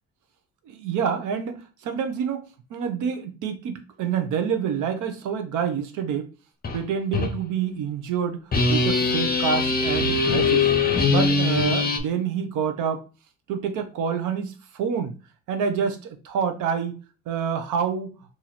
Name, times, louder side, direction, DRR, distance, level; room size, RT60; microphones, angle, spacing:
voice 1, 0.7-2.4 2.7-6.3 6.7-8.4 8.7-10.7 11.1-13.0 13.5-15.1 15.5-17.0 17.3-18.2, right 7 dB, 90° right, 7 dB, 0.7 m, -27 dB
sound 1, 6.6-6.8 7.1-7.3 8.5-12.0, left 4 dB, 30° left, 0.8 m, -22 dB
2.9 x 2.6 x 4.0 m, 0.34 s
cardioid pair, 90°, 30 cm